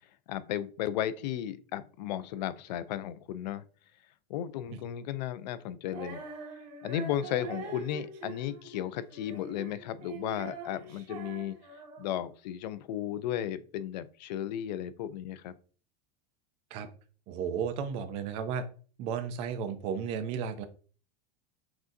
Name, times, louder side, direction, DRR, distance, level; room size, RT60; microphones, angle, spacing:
voice 1, 0.3-3.6 4.3-6.2 6.8-11.6 12.0-15.5, left 11 dB, 80° left, 0.4 m, -34 dB
Female singing, 5.9-12.3, right 4 dB, 70° right, 1.7 m, -44 dB
voice 2, 17.3-18.7 19.0-20.6, right 7 dB, 30° right, 0.3 m, -33 dB
5.9 x 2.6 x 2.6 m
supercardioid pair, 175°, 21 cm